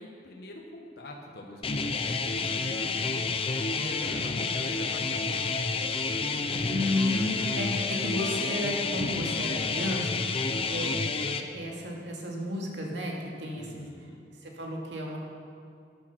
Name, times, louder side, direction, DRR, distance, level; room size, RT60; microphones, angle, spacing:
voice 1, 0.0-3.3 3.8-6.8 13.5-14.2, left 1 dB, 60° left, 0 dB, 1.3 m, -45 dB
sound 1, 1.6-11.4, left 4 dB, 30° left, 0.6 m, -29 dB
voice 2, 6.7-10.2 10.7-13.9 14.4-15.2, left 1 dB, 85° right, -1 dB, 2.3 m, -33 dB
13.0 x 9.0 x 6.1 m, 2.4 s
head